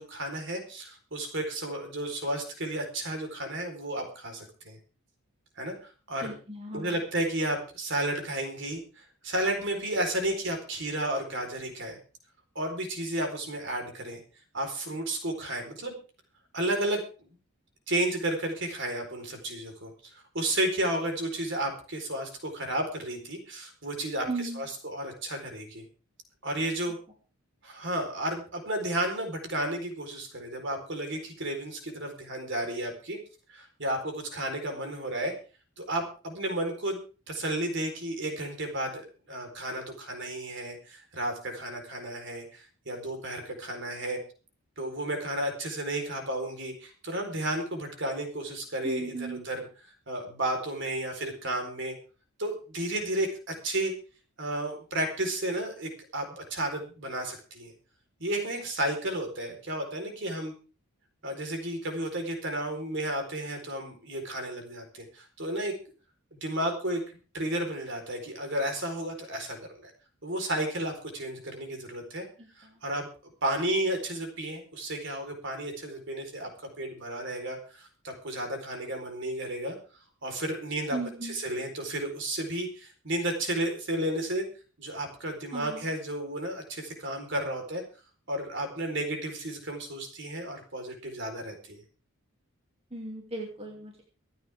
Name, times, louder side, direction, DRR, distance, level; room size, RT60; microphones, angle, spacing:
voice 1, 0.0-4.8 5.6-6.3 6.7-12.0 12.5-14.2 14.5-15.9 16.5-17.0 17.9-19.9 20.3-25.8 26.4-27.0 27.6-33.2 33.5-35.3 35.8-44.2 44.8-51.9 52.4-53.9 54.4-57.7 58.2-60.5 61.2-65.7 66.3-67.0 67.3-69.9 70.2-72.2 72.6-73.1 73.4-76.5 76.8-79.8 80.2-84.5 84.8-87.8 88.3-91.8, right 1 dB, 55° right, 4 dB, 4.2 m, -32 dB
voice 2, 6.2-6.9 24.3-24.6 48.8-49.4 72.4-72.8 80.9-81.4 85.5-85.8 92.9-94.0, right 2 dB, 25° right, 0 dB, 2.8 m, -36 dB
25.0 x 9.3 x 3.6 m, 0.36 s
head